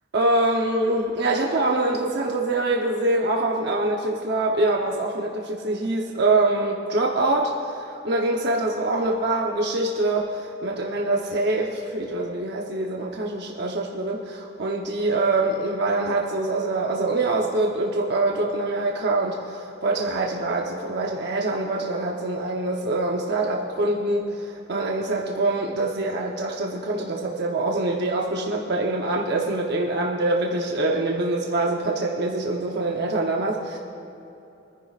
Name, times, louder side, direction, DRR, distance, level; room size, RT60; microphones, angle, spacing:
voice 1, 0.1-33.8, right 2 dB, 60° right, -1 dB, 0.9 m, -24 dB
23.5 x 10.5 x 2.5 m, 2.9 s
head